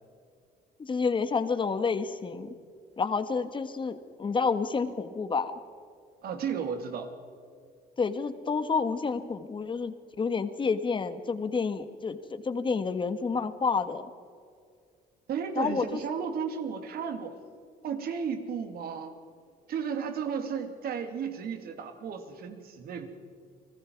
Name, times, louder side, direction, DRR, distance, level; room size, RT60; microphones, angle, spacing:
voice 1, 0.8-2.5 3.0-5.5 8.0-14.1 15.6-16.0, left 5 dB, 30° left, 10 dB, 1.6 m, -29 dB
voice 2, 6.2-7.1 15.3-17.4 17.8-19.1 19.7-23.1, right 6 dB, 65° right, 6 dB, 2.8 m, -34 dB
30.0 x 20.0 x 4.7 m, 2.2 s
cardioid pair, 110°, 17 cm